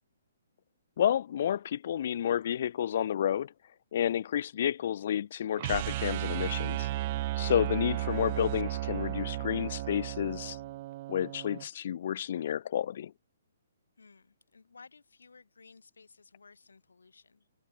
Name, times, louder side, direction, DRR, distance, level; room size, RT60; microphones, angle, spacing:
voice 1, 1.0-3.5 3.9-6.9 7.4-10.6 11.1-13.1, left 10 dB, 50° left, 0.4 m, -30 dB
sound 1, 5.6-11.7, right 16 dB, 40° right, 0.3 m, -34 dB
voice 2, 14.0-17.5, left 4 dB, 75° left, 6.8 m, -57 dB
figure-of-eight pair, 130°, 0 cm